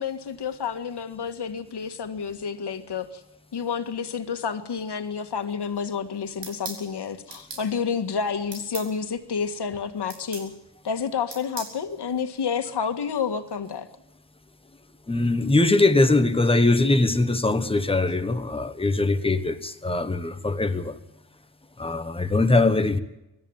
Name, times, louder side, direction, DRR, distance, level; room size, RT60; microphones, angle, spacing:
voice 1, 0.0-3.2 3.5-10.5 10.8-13.9, left 6 dB, 70° left, 1.9 m, -29 dB
sound 1, 6.4-6.8 7.3-7.7 8.5-8.9 10.1-10.5 11.3-11.8, right 4 dB, 80° right, 5.3 m, -37 dB
voice 2, 15.1-21.0 21.8-23.0, left 2 dB, 15° left, 1.2 m, -21 dB
25.0 x 13.5 x 9.0 m
wide cardioid pair, 160°, 42 cm